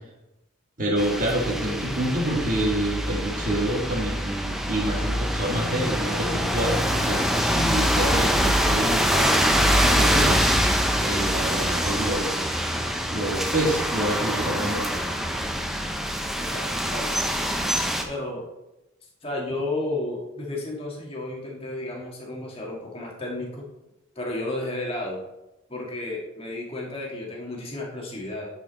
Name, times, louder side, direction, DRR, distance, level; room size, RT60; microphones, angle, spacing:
voice 1, 0.8-10.6 11.0-12.3 13.1-14.9, right 1 dB, 40° right, -2 dB, 2.0 m, -27 dB
sound 1, 1.0-18.0, equal, ahead, 0.6 m, -24 dB
voice 2, 16.4-17.4 18.1-18.4 19.2-23.6 24.1-25.2 25.7-28.5, left 2 dB, 25° left, -2 dB, 1.8 m, -32 dB
9.9 x 5.2 x 4.1 m, 0.97 s
head